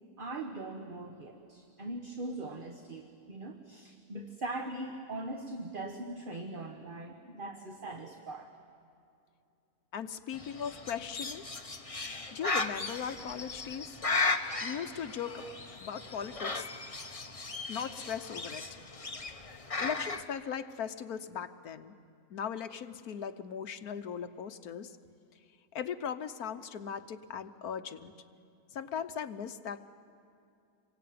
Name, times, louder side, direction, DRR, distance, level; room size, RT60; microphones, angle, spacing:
voice 1, 0.2-8.5, right 2 dB, 35° right, 4 dB, 1.5 m, -41 dB
voice 2, 9.9-11.5 12.3-14.0 14.6-15.5 15.8-16.7 17.7-18.7 19.8-21.9 22.3-25.0 25.7-28.1 28.7-29.8, left 7 dB, 70° left, 9 dB, 1.4 m, -38 dB
Bird, 10.3-20.2, left 3 dB, 25° left, 1.1 m, -36 dB
27.0 x 22.5 x 9.4 m, 2.6 s
omnidirectional pair, 1.7 m